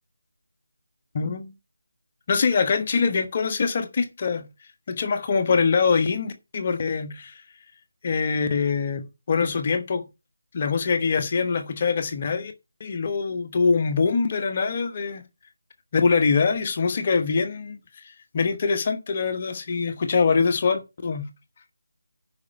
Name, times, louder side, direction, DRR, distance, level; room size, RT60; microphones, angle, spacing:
voice 1, 1.1-1.5 2.3-4.5 4.9-7.4 8.0-10.1 10.5-12.5 12.8-15.2 15.9-21.3, left 5 dB, 30° left, 1.2 m, -24 dB
10.5 x 5.2 x 5.7 m
figure-of-eight pair, 160°, 0 cm